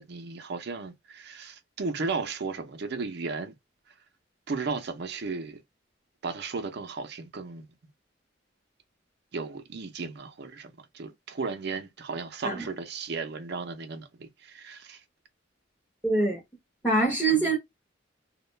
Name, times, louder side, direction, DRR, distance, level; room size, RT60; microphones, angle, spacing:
voice 1, 0.0-3.5 4.5-5.6 6.2-7.7 9.3-15.0 17.3-17.5, right 4 dB, 60° right, 0.5 m, -35 dB
voice 2, 16.0-16.4 16.8-17.6, right 3 dB, 10° left, 0.8 m, -23 dB
2.3 x 2.1 x 3.1 m
head